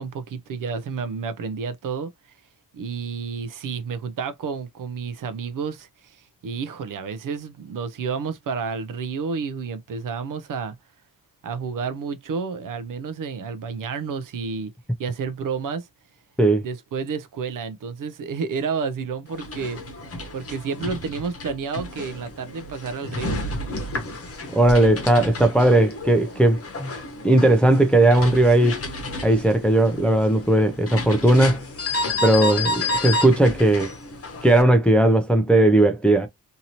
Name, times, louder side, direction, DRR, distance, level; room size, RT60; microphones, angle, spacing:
voice 1, 0.0-2.1 2.7-10.8 11.4-14.7 15.0-15.9 16.6-20.0 20.3-23.4, right 5 dB, 65° right, 0.5 m, -30 dB
sound 1, 19.3-34.6, left 2 dB, 40° left, 0.9 m, -31 dB
voice 2, 24.5-26.9 27.2-28.8 29.2-31.6 32.2-33.9 34.4-36.3, right 1 dB, 5° left, 0.4 m, -17 dB
2.7 x 2.7 x 2.8 m
wide cardioid pair, 140°, 35 cm